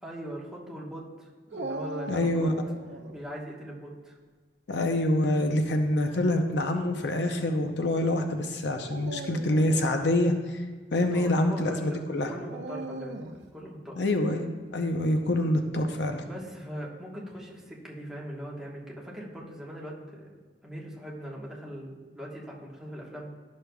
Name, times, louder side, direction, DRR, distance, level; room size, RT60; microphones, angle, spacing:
voice 1, 0.0-2.5 3.1-4.1 11.1-12.0 12.3-13.2 13.5-14.0 16.2-20.3 20.6-23.3, equal, 5° right, -5 dB, 1.3 m, -40 dB
Dog, 1.5-3.2 5.2-5.7 6.5-6.6 8.8-10.0 12.5-13.5, right 2 dB, 90° right, 0.7 m, -39 dB
voice 2, 2.1-2.5 4.7-10.6 10.9-12.3 14.0-16.2, left 1 dB, 70° left, 5 dB, 0.6 m, -26 dB
12.0 x 6.4 x 2.3 m, 1.4 s
head